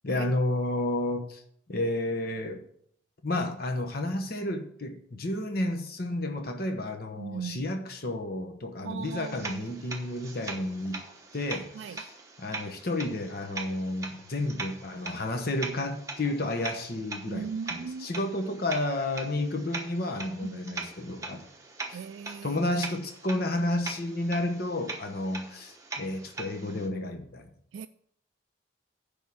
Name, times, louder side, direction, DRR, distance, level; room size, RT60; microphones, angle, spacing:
voice 1, 0.0-1.4 1.7-2.6 3.2-11.0 11.3-12.1 12.4-21.5 21.9-22.0 22.4-27.5, left 1 dB, 50° left, 1.0 m, -31 dB
voice 2, 7.2-7.6 8.8-9.8 11.7-12.0 17.3-18.1 20.4-20.9 21.9-22.8 27.7-27.9, right 6 dB, 70° right, 0.3 m, -39 dB
sound 1, 9.0-26.9, right 3 dB, 15° right, 1.0 m, -41 dB
10.5 x 3.6 x 7.0 m
head